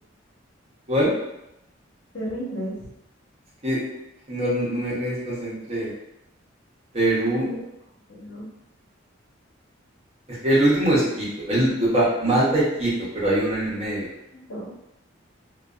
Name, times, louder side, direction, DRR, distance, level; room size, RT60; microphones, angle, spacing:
voice 1, 2.1-2.9 7.4-7.6 8.1-8.5 14.3-14.8, equal, 65° left, -7 dB, 1.0 m, -33 dB
voice 2, 4.3-5.9 6.9-7.4 10.3-14.1, right 1 dB, 30° right, -7 dB, 0.8 m, -22 dB
2.6 x 2.3 x 2.3 m, 0.84 s
head